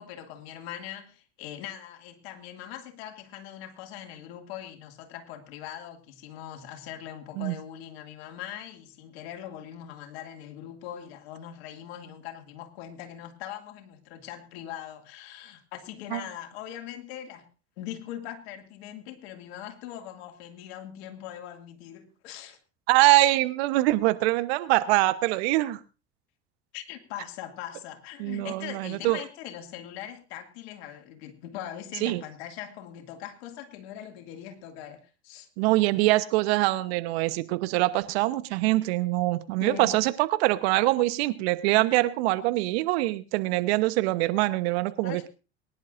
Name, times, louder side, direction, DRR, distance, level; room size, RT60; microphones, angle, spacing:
voice 1, 0.0-17.5 17.8-22.6 26.7-35.5 39.6-40.0 45.0-45.2, left 11 dB, 70° left, 5 dB, 2.4 m, -41 dB
voice 2, 22.9-25.8 28.2-29.2 32.0-32.2 35.6-45.3, right 18 dB, 70° right, 14 dB, 1.1 m, -24 dB
23.0 x 11.0 x 2.6 m, 0.32 s
hypercardioid pair, 80°, 32 cm